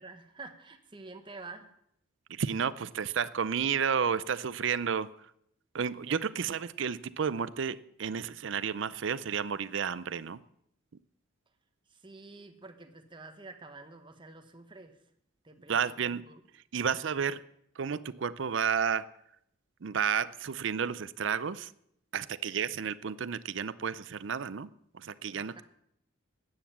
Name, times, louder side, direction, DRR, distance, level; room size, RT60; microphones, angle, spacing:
voice 1, 0.0-1.7 11.9-15.0 15.4-16.4 25.4-25.6, right 3 dB, 25° right, 7 dB, 1.1 m, -48 dB
voice 2, 2.3-5.1 5.7-10.4 15.7-16.2 16.7-17.4 17.8-19.0 19.8-21.7 22.1-24.7 24.9-25.6, right 7 dB, 60° right, 16 dB, 0.5 m, -31 dB
13.0 x 9.0 x 7.3 m, 0.74 s
head